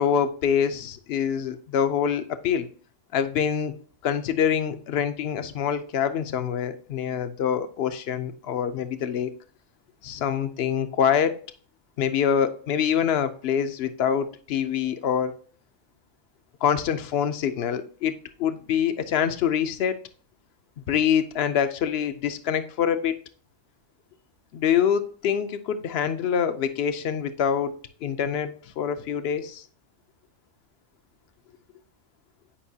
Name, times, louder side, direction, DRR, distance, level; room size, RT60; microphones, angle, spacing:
voice 1, 0.0-2.7 3.1-3.7 4.0-9.3 10.0-11.4 12.0-15.4 16.6-18.1 18.4-20.0 20.9-23.2 24.5-29.6, left 8 dB, 60° left, 10 dB, 0.7 m, -25 dB
8.6 x 5.2 x 2.7 m, 0.43 s
omnidirectional pair, 1.4 m